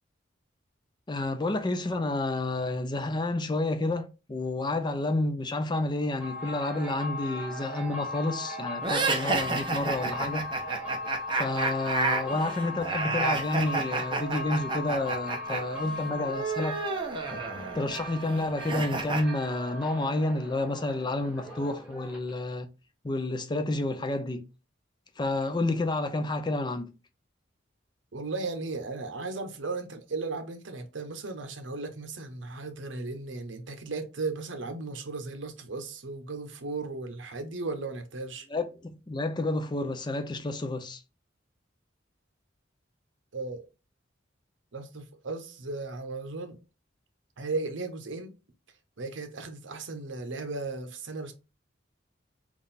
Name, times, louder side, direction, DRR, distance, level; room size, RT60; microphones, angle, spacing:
voice 1, 1.1-10.5 11.3-16.8 17.7-22.7 23.0-24.4 25.2-26.9 38.5-41.0, left 2 dB, 25° left, 0.5 m, -30 dB
sound 1, 6.1-22.5, left 1 dB, 10° right, 1.2 m, -38 dB
sound 2, 8.8-15.6 15.9-19.2, right 3 dB, 25° right, 0.7 m, -30 dB
voice 2, 28.1-38.5 43.3-43.6 44.7-46.6 47.4-48.3 49.0-51.3, right 3 dB, 75° right, 0.8 m, -36 dB
3.7 x 2.4 x 4.0 m
head